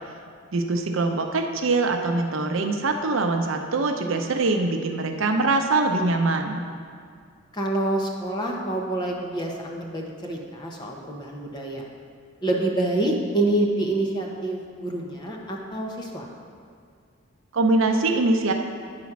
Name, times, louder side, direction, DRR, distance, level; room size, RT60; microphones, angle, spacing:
voice 1, 0.5-6.6 17.5-18.5, right 3 dB, 75° right, 4 dB, 0.7 m, -23 dB
voice 2, 7.5-11.9 12.4-16.3, right 2 dB, 20° left, 0 dB, 0.9 m, -27 dB
9.6 x 4.1 x 5.9 m, 2.2 s
head